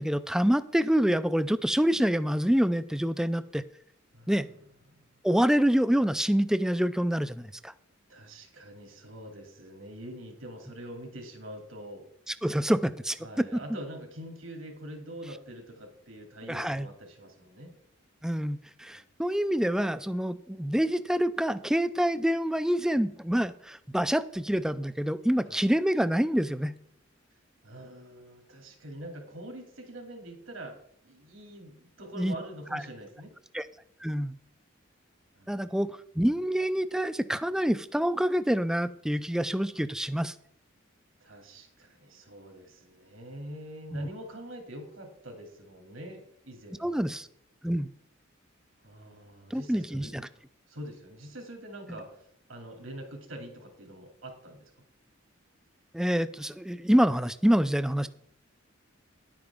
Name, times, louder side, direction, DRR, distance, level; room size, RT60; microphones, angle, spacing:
voice 1, 0.0-3.6 4.3-4.5 5.2-7.7 12.4-13.6 16.5-16.9 18.2-26.7 32.2-32.3 32.7-32.8 33.5-33.7 34.0-34.3 35.5-40.3 43.9-44.1 46.8-47.3 47.6-47.9 49.5-50.2 55.9-58.1, equal, 5° right, 13 dB, 0.3 m, -26 dB
voice 2, 4.1-4.5 5.1-5.2 8.1-12.0 13.2-17.7 18.9-19.0 25.5-25.7 27.6-30.8 31.0-33.3 35.3-35.7 41.2-47.0 48.8-50.4 50.7-54.7, right 1 dB, 85° right, 2 dB, 2.7 m, -44 dB
10.5 x 8.8 x 3.6 m, 0.71 s
head